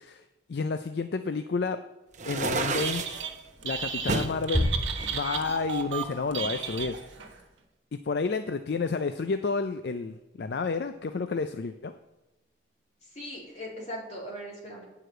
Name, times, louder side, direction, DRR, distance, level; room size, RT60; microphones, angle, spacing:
voice 1, 0.0-1.8 2.3-3.3 3.6-4.7 5.1-7.0 7.9-11.9, left 4 dB, 60° left, 9 dB, 0.4 m, -30 dB
sound 1, 2.1-3.2 4.1-4.4 5.0-6.1, right 3 dB, 40° right, 0.7 m, -31 dB
Telephone, 2.6-3.3 3.6-7.3, right 6 dB, 85° right, 1.2 m, -34 dB
sound 2, 4.5-5.9, equal, ahead, 2.9 m, -30 dB
voice 2, 13.0-14.8, equal, 35° left, -3 dB, 2.9 m, -39 dB
9.6 x 4.9 x 7.8 m, 0.99 s
head